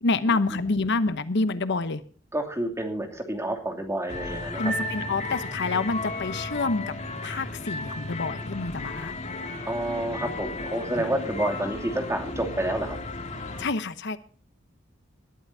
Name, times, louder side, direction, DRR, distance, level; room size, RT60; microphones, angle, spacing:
voice 1, 0.0-2.0 4.5-6.9 7.2-9.1 13.6-14.2, left 3 dB, 60° left, 13 dB, 0.9 m, -27 dB
voice 2, 2.3-4.7 9.6-13.0, right 1 dB, 15° right, 3 dB, 2.7 m, -29 dB
sound 1, 4.1-13.7, left 3 dB, 35° left, 2.3 m, -34 dB
sound 2, 4.7-6.1, right 5 dB, 30° right, 5.6 m, -36 dB
20.0 x 12.5 x 2.7 m, 0.42 s
head